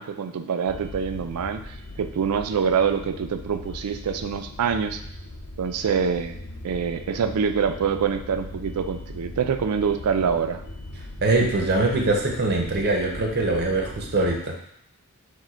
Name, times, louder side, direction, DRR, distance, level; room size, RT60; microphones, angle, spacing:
voice 1, 0.0-1.6 2.0-5.0 5.6-6.4 6.6-10.6, right 6 dB, 85° right, 8 dB, 0.4 m, -25 dB
sound 1, 0.7-14.4, left 1 dB, 80° left, 0.6 m, -39 dB
voice 2, 11.2-14.6, right 2 dB, 45° right, 1 dB, 0.6 m, -23 dB
4.7 x 2.2 x 4.4 m, 0.72 s
head